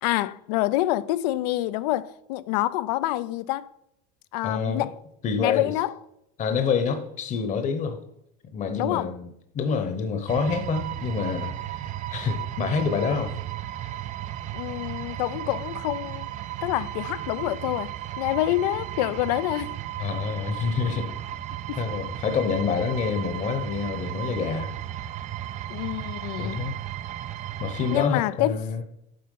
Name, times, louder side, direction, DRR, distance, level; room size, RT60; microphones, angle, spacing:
voice 1, 0.0-3.7 4.3-4.9 5.4-5.9 8.8-9.1 14.5-16.3 16.6-19.7 21.7-21.8 25.7-26.6 27.9-28.6, left 15 dB, 75° left, 0.5 m, -27 dB
voice 2, 4.4-4.9 5.2-5.7 6.4-8.0 8.5-9.3 9.5-11.8 12.1-13.3 13.8-13.9 20.0-21.1 21.8-24.8 26.4-26.8 27.6-28.8, left 6 dB, 35° left, 0.9 m, -27 dB
sound 1, 10.3-28.1, right 13 dB, 35° right, 0.4 m, -35 dB
7.8 x 4.3 x 5.4 m
supercardioid pair, 110°, 21 cm